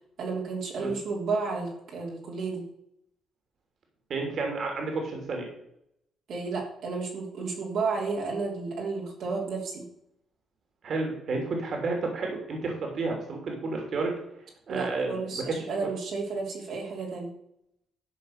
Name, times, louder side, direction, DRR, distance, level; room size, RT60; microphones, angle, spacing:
voice 1, 0.2-2.6 6.3-9.8 14.7-17.3, right 4 dB, 75° right, -2 dB, 3.2 m, -32 dB
voice 2, 4.1-5.5 10.8-14.1 14.7-15.4, right 3 dB, 60° right, 2 dB, 3.1 m, -31 dB
13.0 x 5.0 x 6.6 m, 0.78 s
cardioid pair, 90°, 0 cm